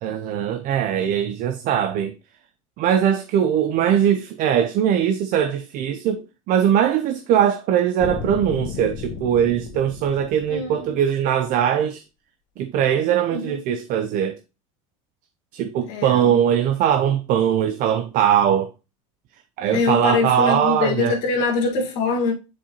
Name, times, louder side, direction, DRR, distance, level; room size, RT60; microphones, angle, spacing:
voice 1, 0.0-2.1 2.8-12.0 12.6-14.4 15.5-18.7 19.6-21.2, right 9 dB, 50° right, 0.6 m, -21 dB
sound 1, 8.0-11.2, left 6 dB, 40° left, 1.0 m, -34 dB
voice 2, 10.5-11.0 13.3-13.6 15.9-16.4 19.7-22.3, left 4 dB, 65° left, 1.7 m, -23 dB
7.3 x 4.4 x 2.9 m
hypercardioid pair, 100°, 18 cm